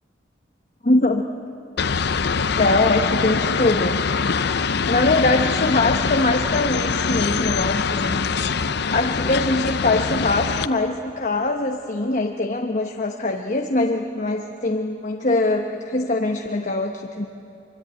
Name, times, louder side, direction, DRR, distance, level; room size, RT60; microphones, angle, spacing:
voice 1, 0.8-1.3 2.6-4.0 4.9-8.3 8.9-17.3, left 2 dB, 40° left, 3 dB, 1.1 m, -22 dB
sound 1, 1.8-10.7, left 5 dB, 60° left, 0.7 m, -23 dB
25.0 x 24.0 x 8.9 m, 2.8 s
head